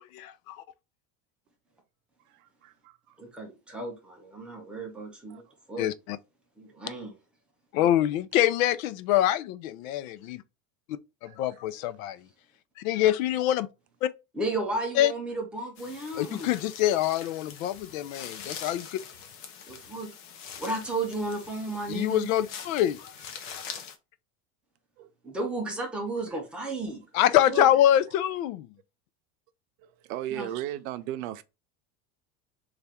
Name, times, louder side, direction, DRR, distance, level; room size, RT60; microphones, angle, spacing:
voice 1, 0.1-0.6 5.8-6.2 7.7-10.4 11.2-12.2 12.8-13.7 14.0-14.1 15.0-15.1 16.2-19.0 21.9-23.1 23.5-23.6 27.1-28.7, left 12 dB, 85° left, 0.5 m, -25 dB
voice 2, 2.3-3.0 5.3-5.4 10.2-10.3 11.2-11.6 25.0-25.3 26.3-26.4 27.2-27.3 29.8-31.4, right 12 dB, 85° right, 0.6 m, -37 dB
voice 3, 3.2-5.4 5.7-5.9 6.6-7.2 14.3-16.5 19.7-20.1 20.6-22.3 25.2-27.0 27.5-27.7 30.3-30.5, right 2 dB, 5° right, 0.4 m, -33 dB
sound 1, 15.8-24.0, left 7 dB, 50° left, 0.8 m, -44 dB
3.4 x 2.5 x 4.1 m
cardioid pair, 175°, 39 cm